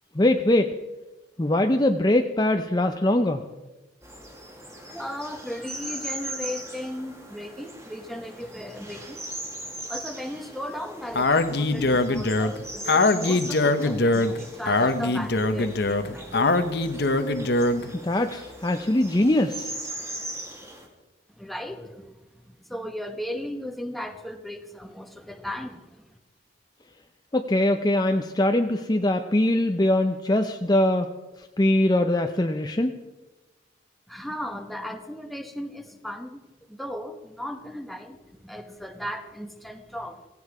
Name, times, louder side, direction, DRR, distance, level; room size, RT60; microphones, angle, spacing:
voice 1, 0.2-0.7 1.4-3.4 18.0-19.7 27.3-31.1 31.6-32.9, left 1 dB, 20° left, 6 dB, 0.6 m, -22 dB
forrest birds and crows, 4.0-20.9, right 1 dB, 15° right, 2.2 m, -39 dB
voice 2, 4.9-9.2 9.9-16.9 21.3-26.2 34.1-36.4 36.7-40.3, equal, ahead, 6 dB, 1.1 m, -36 dB
Speech, 11.2-17.9, left 2 dB, 55° left, 0.9 m, -22 dB
16.5 x 16.5 x 4.9 m, 1.1 s
head